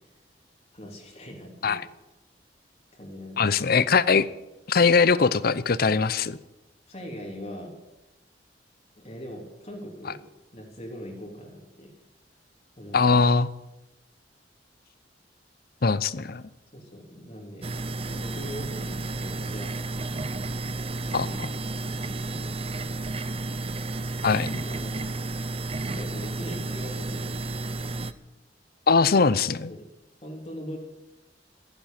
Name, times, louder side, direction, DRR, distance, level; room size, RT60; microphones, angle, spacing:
voice 1, 0.7-1.8 2.9-3.4 6.9-7.7 9.0-10.2 10.5-11.9 12.8-13.0 16.7-17.7 18.1-19.7 21.0-22.5 24.4-25.1 25.7-27.4 29.6-29.9 30.2-30.8, equal, 40° left, 0 dB, 3.4 m, -41 dB
voice 2, 3.4-4.3 4.7-6.4 12.9-13.5 15.8-16.4 21.1-21.5 24.2-24.6 28.9-29.7, left 5 dB, 55° left, 17 dB, 0.7 m, -21 dB
sound 1, 17.6-28.1, right 2 dB, 35° right, 0.7 m, -32 dB
14.5 x 11.0 x 9.2 m, 0.97 s
head